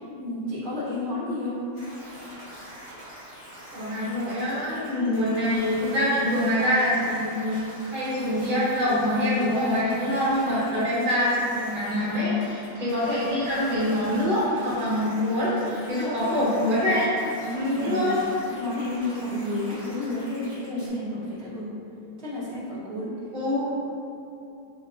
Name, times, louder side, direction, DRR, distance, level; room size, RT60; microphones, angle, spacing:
voice 1, 0.0-1.6 17.4-18.2 18.5-21.7 22.2-23.1, left 2 dB, 40° right, -11 dB, 1.5 m, -31 dB
sound 1, 1.7-20.9, equal, 55° left, 1.4 m, -44 dB
voice 2, 3.7-17.1 17.5-18.2 23.3-23.7, left 1 dB, 65° right, -10 dB, 1.9 m, -25 dB
5.5 x 3.0 x 2.5 m, 2.7 s
omnidirectional pair, 1.9 m